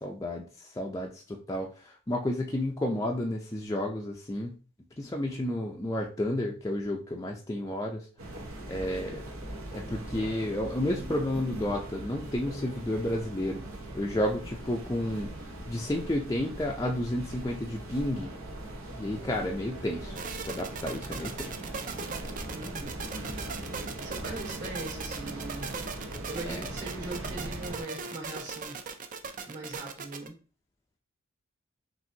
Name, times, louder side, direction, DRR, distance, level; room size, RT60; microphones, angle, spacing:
voice 1, 0.0-4.5 5.0-8.0 8.7-9.2 9.7-13.6 13.9-15.3 15.7-18.3 19.0-21.5 26.5-26.6, left 1 dB, 15° left, -1 dB, 0.4 m, -31 dB
sound 1, 8.2-27.8, right 1 dB, 80° right, 1.0 m, -40 dB
sound 2, 20.2-30.3, right 5 dB, 40° right, 0.5 m, -39 dB
voice 2, 22.5-23.0 24.0-25.9 26.3-28.8 29.5-30.3, right 2 dB, 55° right, -3 dB, 2.4 m, -40 dB
5.8 x 2.6 x 2.7 m, 0.37 s
head